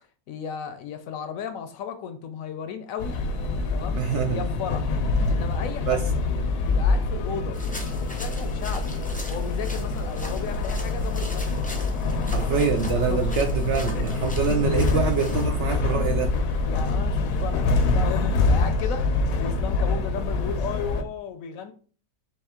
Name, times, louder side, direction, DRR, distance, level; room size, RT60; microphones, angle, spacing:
voice 1, 0.3-3.2 3.7-4.0 4.3-6.1 6.7-7.6 8.0-8.9 9.3-12.7 13.1-13.4 13.8-14.0 14.5-14.6 16.6-19.1 19.4-21.7, left 7 dB, 70° left, 9 dB, 0.9 m, -35 dB
sound 1, 3.0-21.0, left 3 dB, 90° left, 1.2 m, -25 dB
voice 2, 4.0-4.5 5.9-6.0 12.2-16.3, right 6 dB, 70° right, 4 dB, 0.7 m, -25 dB
sound 2, 7.5-15.5, left 1 dB, 15° left, 0.3 m, -39 dB
4.2 x 3.3 x 3.6 m, 0.41 s
omnidirectional pair, 1.6 m